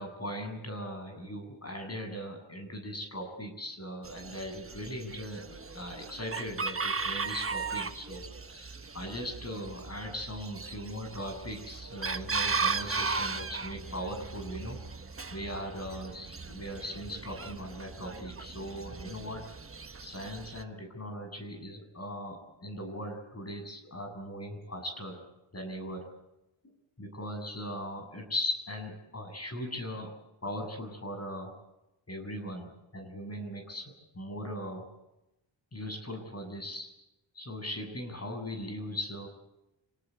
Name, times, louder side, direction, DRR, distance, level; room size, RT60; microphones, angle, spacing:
voice 1, 0.0-14.8 15.3-19.4 20.0-25.2 25.5-26.1 26.6-30.1 30.4-31.6 32.1-34.9 35.7-36.9 37.3-39.3, equal, 30° left, 4 dB, 7.7 m, -39 dB
Chicken rooster, 4.0-20.6, right 4 dB, 30° right, 1.2 m, -37 dB
27.5 x 18.5 x 8.5 m, 0.91 s
wide cardioid pair, 85°, 47 cm